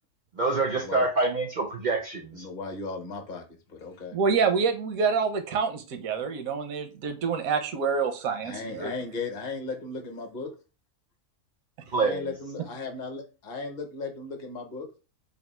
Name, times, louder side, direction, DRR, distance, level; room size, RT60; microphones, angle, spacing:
voice 1, 0.4-2.5 11.9-12.2, right 3 dB, 60° right, 3 dB, 0.4 m, -26 dB
voice 2, 2.3-4.2 8.4-10.5 12.0-14.9, left 3 dB, 40° left, 4 dB, 0.8 m, -36 dB
voice 3, 4.1-8.9, right 5 dB, 85° right, 7 dB, 1.1 m, -27 dB
3.3 x 2.5 x 4.2 m, 0.33 s
omnidirectional pair, 1.5 m